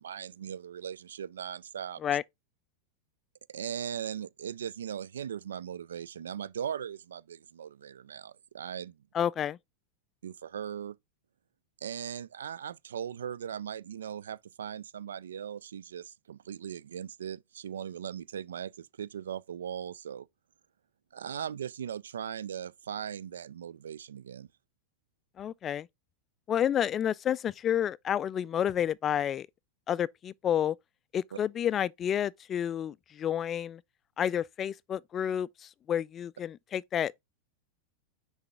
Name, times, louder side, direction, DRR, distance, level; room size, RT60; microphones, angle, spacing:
voice 1, 0.0-2.0 3.5-9.0 10.2-11.0 11.8-20.3 21.1-24.5, right 8 dB, 65° right, 0.3 m, -39 dB
voice 2, 9.1-9.6 25.4-25.9 26.5-29.5 29.9-30.8 31.1-33.8 34.2-37.2, left 9 dB, 25° left, 0.3 m, -30 dB
6.6 x 4.7 x 3.5 m
figure-of-eight pair, 90°, 0 cm